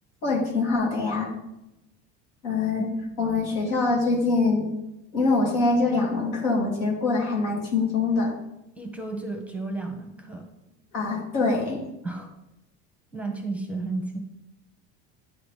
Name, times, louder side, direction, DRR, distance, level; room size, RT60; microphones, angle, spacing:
voice 1, 0.2-1.3 2.4-2.9 3.2-4.7 5.1-8.3 10.9-11.8, left 3 dB, 85° left, -1 dB, 2.2 m, -24 dB
voice 2, 8.8-10.5 12.0-12.3 13.1-14.2, right 3 dB, 5° right, 3 dB, 0.9 m, -33 dB
9.8 x 3.9 x 3.3 m, 0.88 s
supercardioid pair, 115°, 35 cm